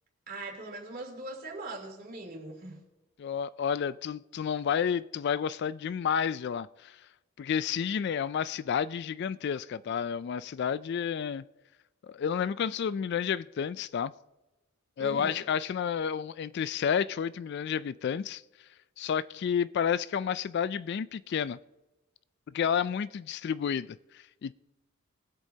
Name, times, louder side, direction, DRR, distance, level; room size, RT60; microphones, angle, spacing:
voice 1, 0.3-2.8 15.0-15.4, right 2 dB, 45° right, 2.9 m, -41 dB
voice 2, 3.2-7.0 7.4-11.4 12.1-14.1 15.0-18.4 19.0-21.6 22.5-24.5, left 7 dB, 50° left, 0.3 m, -30 dB
22.0 x 8.1 x 2.8 m
head